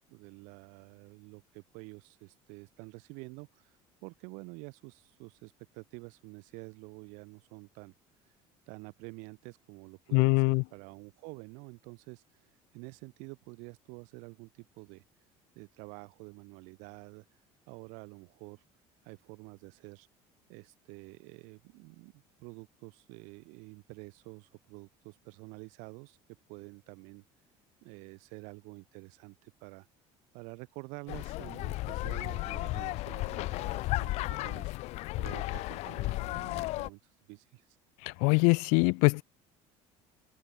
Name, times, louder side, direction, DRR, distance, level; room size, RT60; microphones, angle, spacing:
voice 1, 0.1-7.9 8.2-8.4 8.7-15.3 15.5-18.6 19.0-20.1 20.5-26.2 26.5-27.2 27.8-29.9 30.3-34.1 34.4-34.7 35.2-37.8, right 31 dB, 80° right, 2.9 m, -49 dB
voice 2, 10.1-10.6 38.0-39.2, left 35 dB, 80° left, 0.5 m, -23 dB
sound 1, 31.1-36.9, left 19 dB, 60° left, 2.5 m, -34 dB
open air
cardioid pair, 165°, 13 cm